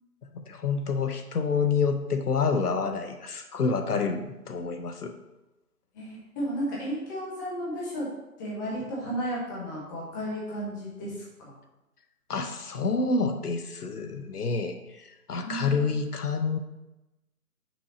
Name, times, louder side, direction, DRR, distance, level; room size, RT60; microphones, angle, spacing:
voice 1, 0.3-5.1 12.3-16.6, left 4 dB, 80° left, 7 dB, 0.9 m, -28 dB
voice 2, 5.9-8.1 8.4-11.5 15.4-15.9, equal, 15° left, -6 dB, 1.3 m, -33 dB
6.1 x 5.8 x 4.2 m, 1.0 s
figure-of-eight pair, 155°, 46 cm